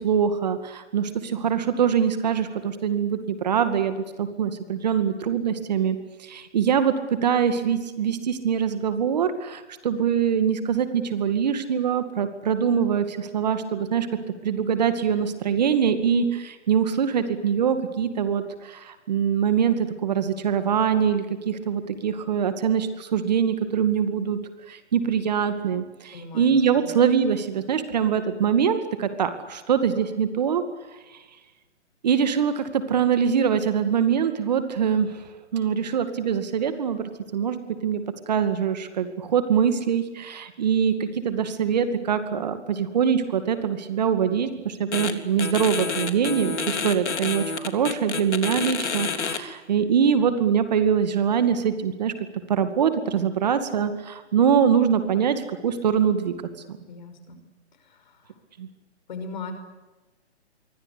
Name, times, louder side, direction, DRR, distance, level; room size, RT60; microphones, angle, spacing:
voice 1, 0.0-6.9 7.2-14.1 14.4-24.4 24.7-30.6 32.0-35.2 35.5-52.1 52.5-56.3 56.7-56.8 58.6-58.7, right 7 dB, 35° right, 9 dB, 2.3 m, -23 dB
voice 2, 26.1-26.9 56.9-57.4 57.8-58.3 59.1-59.5, left 4 dB, 40° left, 9 dB, 5.7 m, -39 dB
sound 1, 44.9-45.1 45.4-49.4, left 5 dB, 75° left, 3.5 m, -28 dB
27.5 x 24.0 x 8.5 m, 1.1 s
hypercardioid pair, 165°, 34 cm